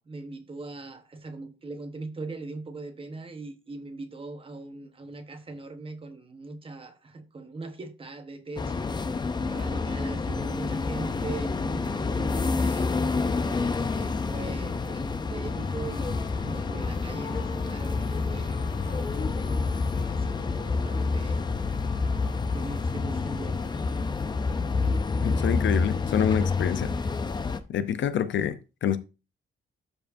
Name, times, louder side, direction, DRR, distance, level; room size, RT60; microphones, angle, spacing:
voice 1, 0.0-9.0 9.5-19.3 19.9-21.5 22.5-23.8, right 3 dB, 25° right, 1.0 m, -40 dB
sound 1, 8.6-27.6, left 4 dB, 20° left, 0.5 m, -28 dB
sound 2, 15.2-23.0, left 4 dB, 90° left, 2.7 m, -50 dB
voice 2, 25.2-26.9 27.7-29.0, left 9 dB, 65° left, 0.6 m, -27 dB
12.5 x 4.7 x 2.6 m
wide cardioid pair, 180°, 21 cm